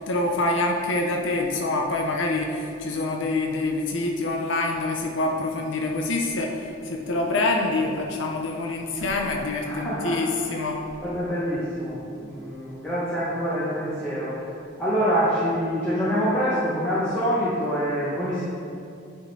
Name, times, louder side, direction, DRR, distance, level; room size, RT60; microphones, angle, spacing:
voice 1, 0.0-10.8, left 2 dB, 65° left, 1 dB, 0.6 m, -26 dB
voice 2, 9.6-10.2 11.0-14.4 14.8-18.4, equal, 10° left, -11 dB, 1.1 m, -25 dB
9.6 x 3.7 x 4.1 m, 2.6 s
head